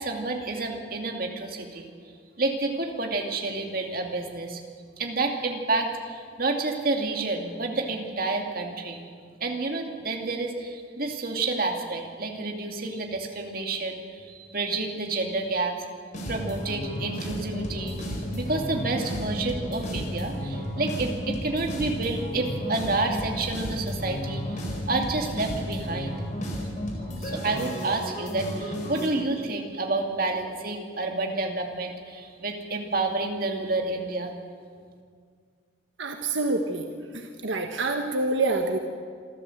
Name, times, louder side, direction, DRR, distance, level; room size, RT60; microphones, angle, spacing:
voice 1, 0.0-1.9 2.4-4.6 5.0-9.1 9.4-15.9 16.3-18.0 18.3-24.6 24.9-26.3 27.2-34.3, right 3 dB, 50° right, 2 dB, 2.6 m, -29 dB
sound 1, 16.1-29.1, equal, 40° left, 4.3 m, -32 dB
voice 2, 36.0-36.9 37.1-38.8, right 2 dB, 80° right, 4 dB, 1.4 m, -27 dB
26.0 x 14.0 x 8.0 m, 2.1 s
head